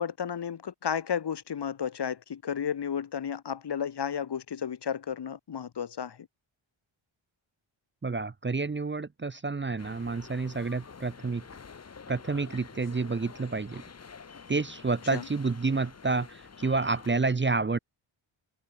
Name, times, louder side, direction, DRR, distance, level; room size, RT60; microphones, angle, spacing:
voice 1, 0.0-6.2 15.1-15.2, left 8 dB, 55° left, 1.1 m, -33 dB
voice 2, 8.0-11.4 12.1-13.8 14.5-17.8, right 3 dB, 25° right, 0.7 m, -29 dB
sound 1, 9.8-17.2, left 5 dB, 30° left, 0.9 m, -48 dB
wide cardioid pair, 105°, 49 cm